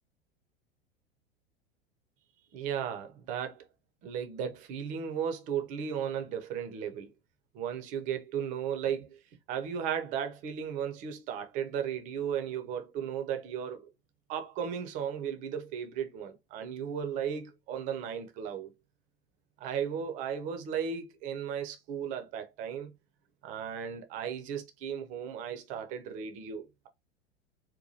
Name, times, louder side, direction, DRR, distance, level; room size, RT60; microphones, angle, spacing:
voice 1, 2.5-3.7 4.0-7.1 7.5-9.2 9.5-13.8 14.3-18.7 19.6-22.9 23.4-26.9, right 8 dB, 25° right, 0.4 m, -35 dB
2.7 x 2.2 x 2.6 m
figure-of-eight pair, 85°, 32 cm